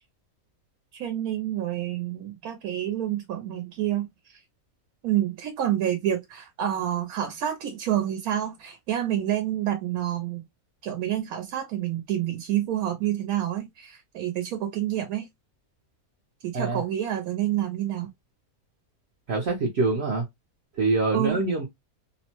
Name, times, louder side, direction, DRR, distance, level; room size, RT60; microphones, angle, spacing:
voice 1, 0.9-4.4 5.0-10.4 10.8-15.3 16.4-18.1 21.1-21.4, right 11 dB, 85° right, 1.1 m, -28 dB
voice 2, 19.3-20.3 20.7-21.7, right 3 dB, 60° right, 0.8 m, -25 dB
2.8 x 2.1 x 2.8 m
omnidirectional pair, 1.5 m